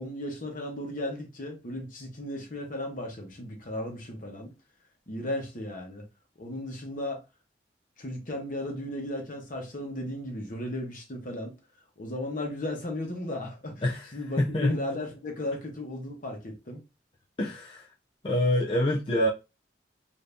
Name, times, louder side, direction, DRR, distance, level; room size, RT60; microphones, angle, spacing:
voice 1, 0.0-4.5 5.1-6.0 6.4-7.2 8.0-11.5 12.0-13.9 14.1-16.8, left 1 dB, 50° left, 1.0 m, -35 dB
voice 2, 14.4-14.7 17.4-17.8 18.2-19.3, left 1 dB, 30° left, 0.4 m, -25 dB
2.7 x 2.6 x 3.4 m
head